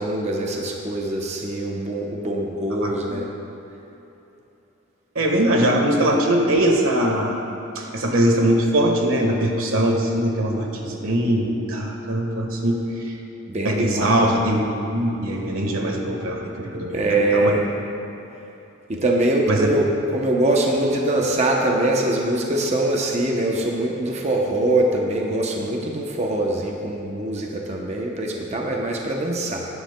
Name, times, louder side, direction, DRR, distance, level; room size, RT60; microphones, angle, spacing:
voice 1, 0.0-3.3 13.5-14.3 16.9-17.6 18.9-29.7, right 1 dB, 30° right, -1 dB, 0.7 m, -23 dB
voice 2, 2.8-3.2 5.1-7.4 7.7-13.1 13.6-17.5 19.5-19.7, right 1 dB, 85° right, 1 dB, 1.4 m, -21 dB
17.5 x 10.0 x 2.2 m, 3.0 s
head